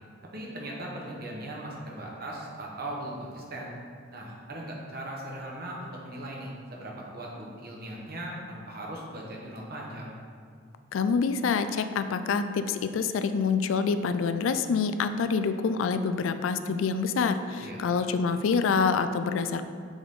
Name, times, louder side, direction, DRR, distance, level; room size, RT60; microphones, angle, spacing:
voice 1, 0.3-3.7 4.1-10.1 17.6-17.8, right 1 dB, 50° right, -2 dB, 1.1 m, -39 dB
voice 2, 10.9-19.6, left 5 dB, 90° left, 10 dB, 0.3 m, -26 dB
7.0 x 4.1 x 3.7 m, 2.1 s
head